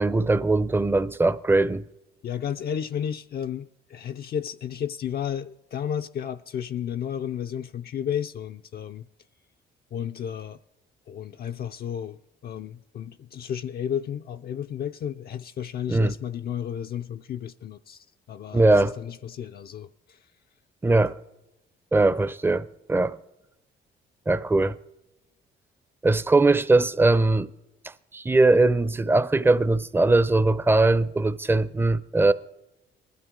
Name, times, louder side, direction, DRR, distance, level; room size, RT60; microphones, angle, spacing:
voice 1, 0.0-1.8 15.9-16.1 18.5-18.9 20.8-21.2 21.9-23.2 24.3-24.8 26.0-27.5 28.1-32.3, right 2 dB, 10° right, 0.5 m, -20 dB
voice 2, 2.2-9.1 9.9-10.6 11.1-20.2, left 9 dB, 50° left, 0.4 m, -33 dB
20.0 x 12.5 x 3.7 m
cardioid pair, 90°, 20 cm